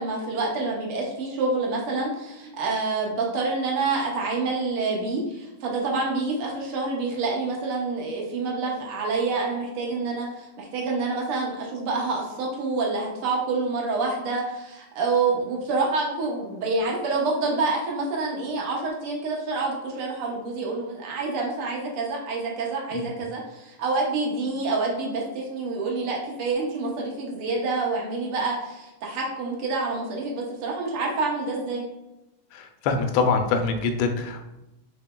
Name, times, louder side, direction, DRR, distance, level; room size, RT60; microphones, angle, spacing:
voice 1, 0.0-31.8, right 3 dB, 85° right, -1 dB, 1.8 m, -27 dB
voice 2, 32.5-34.5, left 4 dB, 75° left, 5 dB, 1.3 m, -24 dB
5.7 x 4.0 x 2.2 m, 0.94 s
omnidirectional pair, 2.4 m